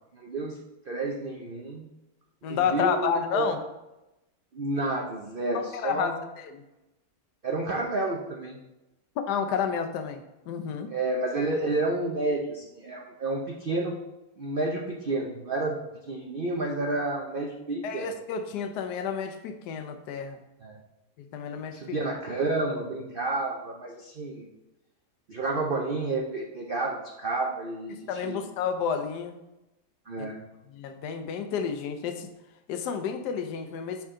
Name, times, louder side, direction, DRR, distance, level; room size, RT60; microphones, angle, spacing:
voice 1, 0.1-0.6 0.9-1.9 2.4-3.5 4.5-6.2 7.4-8.6 10.9-13.9 14.4-15.8 16.1-18.1 20.6-20.8 21.7-24.5 25.3-28.4 30.1-30.4, right 2 dB, 75° right, 0 dB, 0.5 m, -30 dB
voice 2, 2.4-3.6 5.5-6.1 6.4-6.6 9.2-10.9 17.8-20.4 21.2-21.8 28.1-29.4 30.2-30.3 30.7-32.3 32.7-34.0, left 7 dB, 70° left, 7 dB, 1.2 m, -30 dB
7.1 x 4.7 x 3.7 m, 0.95 s
omnidirectional pair, 1.9 m